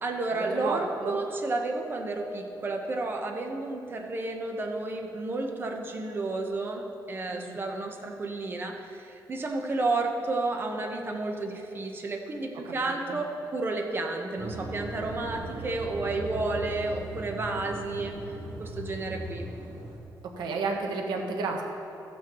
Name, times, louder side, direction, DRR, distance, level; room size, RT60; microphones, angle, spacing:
voice 1, 0.0-18.1 18.6-19.5, right 2 dB, 30° right, 2 dB, 1.0 m, -31 dB
voice 2, 0.5-1.2 7.3-7.6 13.1-13.2 20.4-21.6, right 4 dB, 80° right, 2 dB, 1.2 m, -31 dB
sound 1, 14.4-20.0, right 1 dB, 60° right, 1.3 m, -39 dB
14.5 x 8.6 x 3.1 m, 3.0 s
cardioid pair, 140°, 7 cm